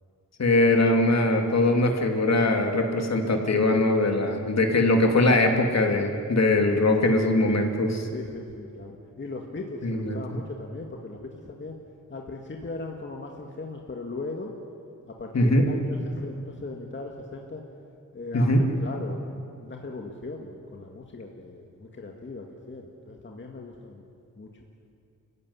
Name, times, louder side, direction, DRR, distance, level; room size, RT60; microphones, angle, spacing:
voice 1, 0.4-8.0 9.8-10.2 15.3-15.7 18.3-18.6, left 2 dB, 55° left, 3 dB, 2.8 m, -21 dB
voice 2, 8.1-11.8 12.1-14.5 15.1-17.6 18.1-24.0 24.4-24.5, left 3 dB, 40° left, 1 dB, 2.0 m, -38 dB
28.5 x 15.5 x 9.9 m, 2.4 s
wide cardioid pair, 120°, 31 cm